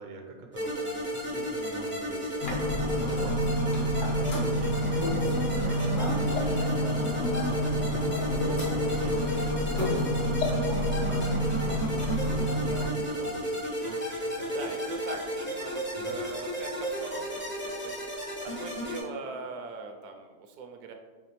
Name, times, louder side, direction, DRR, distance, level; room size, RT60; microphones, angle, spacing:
voice 1, 0.0-9.5 9.8-14.5 15.9-16.2, right 3 dB, 55° right, 1 dB, 0.5 m, -45 dB
sound 1, 0.5-19.0, equal, 15° left, 0.4 m, -33 dB
sound 2, 2.4-12.9, equal, 40° left, 0.9 m, -29 dB
sound 3, 4.6-11.3, left 4 dB, 70° left, 0.7 m, -38 dB
voice 2, 14.5-20.9, right 4 dB, 75° right, 4 dB, 1.1 m, -41 dB
4.9 x 3.4 x 3.0 m, 1.3 s
omnidirectional pair, 1.7 m